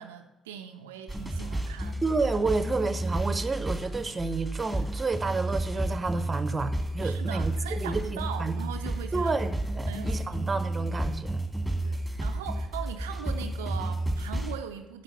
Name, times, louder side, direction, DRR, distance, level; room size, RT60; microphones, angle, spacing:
voice 1, 0.0-2.0 7.0-9.6 9.9-10.6 11.8-15.0, right 9 dB, 75° right, 6 dB, 0.5 m, -40 dB
sound 1, 1.1-14.6, right 1 dB, ahead, 2.3 m, -31 dB
voice 2, 2.0-8.6 9.1-11.4, right 3 dB, 25° right, 11 dB, 0.9 m, -30 dB
10.0 x 6.7 x 5.5 m, 1.1 s
figure-of-eight pair, 45°, 0 cm